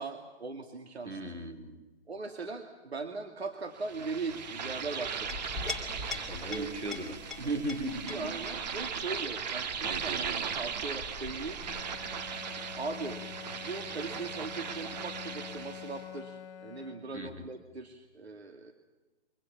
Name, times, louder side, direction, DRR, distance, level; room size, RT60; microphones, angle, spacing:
voice 1, 0.0-1.2 2.1-5.4 6.4-6.7 8.1-11.6 11.9-12.0 12.8-13.2 13.5-18.7, right 3 dB, 65° right, 5 dB, 2.4 m, -39 dB
voice 2, 1.0-1.8 6.3-8.4 8.7-8.8 17.1-17.5, right 2 dB, 90° right, 3 dB, 4.2 m, -37 dB
sound 1, 3.8-16.0, right 6 dB, 40° right, 1.6 m, -38 dB
Chink clink, 5.0-12.2, left 4 dB, ahead, 2.9 m, -43 dB
Bowed string instrument, 11.6-17.4, left 8 dB, 25° left, 0.9 m, -46 dB
26.5 x 24.5 x 7.3 m, 1.1 s
figure-of-eight pair, 135°, 34 cm